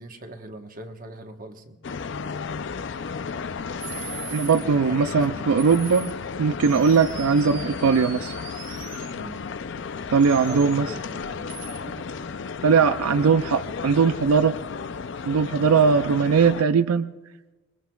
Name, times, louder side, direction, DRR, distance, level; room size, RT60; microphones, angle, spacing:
voice 1, 0.0-1.8 4.5-5.5 9.1-9.4 10.5-11.5, right 1 dB, 40° right, 5 dB, 1.2 m, -40 dB
sound 1, 1.8-16.6, left 5 dB, 55° left, 0.4 m, -33 dB
sound 2, 3.8-4.6 5.6-6.1 6.6-9.1 10.2-10.8 11.5-11.8, right 10 dB, 60° right, 1.3 m, -41 dB
voice 2, 4.3-6.1 6.4-8.3 10.1-10.9 12.6-14.5 15.3-17.1, right 5 dB, 85° right, 12 dB, 0.4 m, -20 dB
26.5 x 21.5 x 2.3 m, 1.2 s
head